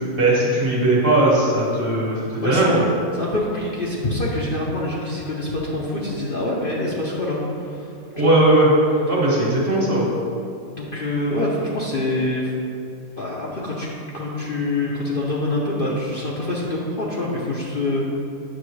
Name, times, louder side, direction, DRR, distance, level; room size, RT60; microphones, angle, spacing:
voice 1, 0.2-2.8 8.1-8.7 9.1-10.1, right 2 dB, 40° right, -5 dB, 1.6 m, -18 dB
voice 2, 2.4-2.8 3.2-7.4 7.7-7.8 8.2-8.4 9.4-9.5 10.7-12.5 13.2-13.9 14.1-18.1, left 2 dB, 45° left, -5 dB, 0.8 m, -25 dB
8.4 x 6.3 x 3.2 m, 2.5 s
omnidirectional pair, 1.6 m